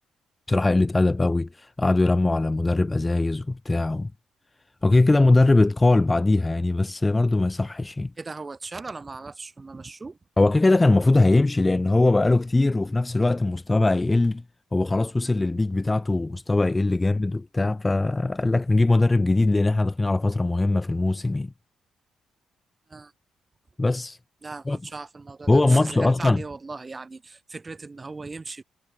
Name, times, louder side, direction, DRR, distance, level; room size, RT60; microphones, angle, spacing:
voice 1, 0.5-4.1 4.8-8.1 10.4-14.4 14.7-21.5 23.8-24.2 24.7-24.8 25.5-26.4, left 2 dB, 15° left, 0.5 m, -21 dB
voice 2, 8.2-10.2 22.9-23.1 24.4-28.6, right 3 dB, 25° right, 5.2 m, -38 dB
cardioid pair, 90°, 0 cm